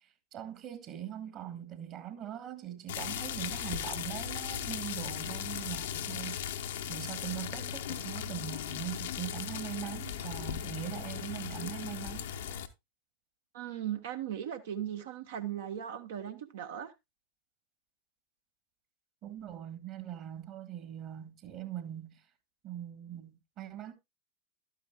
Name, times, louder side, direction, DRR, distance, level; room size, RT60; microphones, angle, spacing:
voice 1, 0.3-12.3 19.2-22.2 22.6-23.9, right 11 dB, 35° right, 1.5 m, -41 dB
sound 1, 2.9-12.7, left 9 dB, 60° left, 0.8 m, -37 dB
voice 2, 13.5-16.9, right 10 dB, 55° right, 0.9 m, -38 dB
12.0 x 9.3 x 2.2 m
figure-of-eight pair, 90°, 0 cm